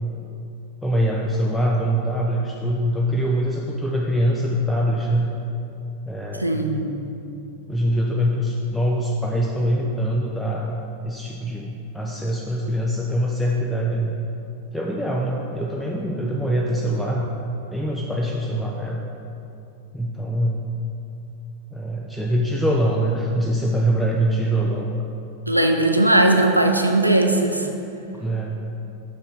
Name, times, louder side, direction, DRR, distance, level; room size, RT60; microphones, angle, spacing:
voice 1, 0.8-5.3 6.1-6.8 7.7-14.1 14.7-17.4 17.7-19.0 19.9-20.6 21.7-24.9 28.1-28.6, equal, 5° left, -2 dB, 0.5 m, -23 dB
voice 2, 6.4-6.9 25.5-27.7, right 1 dB, 90° right, 4 dB, 0.5 m, -18 dB
6.5 x 5.1 x 4.8 m, 2.7 s
figure-of-eight pair, 90°, 0 cm